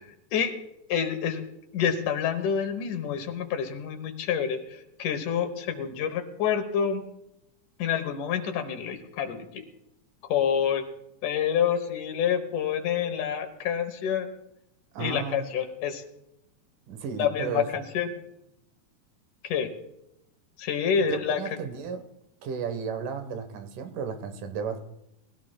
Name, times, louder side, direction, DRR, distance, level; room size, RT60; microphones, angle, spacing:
voice 1, 0.9-1.4 1.7-7.1 7.8-9.6 10.2-10.8 11.2-14.3 15.0-16.0 17.2-18.1 19.4-19.7 20.6-21.4, left 8 dB, 80° left, 7 dB, 2.5 m, -27 dB
voice 2, 14.9-15.5 16.9-17.7 21.1-22.0 22.4-24.9, right 6 dB, 90° right, 8 dB, 2.7 m, -33 dB
21.0 x 16.5 x 2.2 m, 0.84 s
omnidirectional pair, 3.6 m